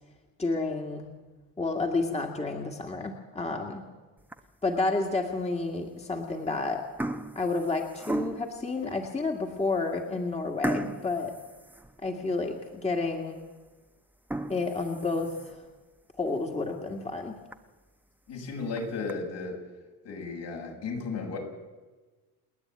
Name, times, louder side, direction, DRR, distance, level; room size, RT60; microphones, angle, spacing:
voice 1, 0.4-1.1 1.6-3.8 4.6-6.8 7.4-11.4 12.0-13.4 14.5-15.4 16.2-17.3, left 3 dB, 15° left, 2 dB, 2.0 m, -30 dB
sound 1, 4.2-4.7 5.3-5.4 6.2-6.5 6.8-8.6 9.2-9.3 9.7-9.8 10.6-12.4 12.8-12.9 13.4-13.5 14.1-15.7 16.2-16.3 16.7-16.8 17.1-17.2 17.5-17.6 18.5-19.1, right 1 dB, 5° right, 1.0 m, -36 dB
voice 2, 18.3-19.6 20.0-21.4, left 4 dB, 70° left, 0 dB, 7.0 m, -34 dB
29.0 x 9.9 x 9.0 m, 1.3 s
cardioid pair, 100°, 43 cm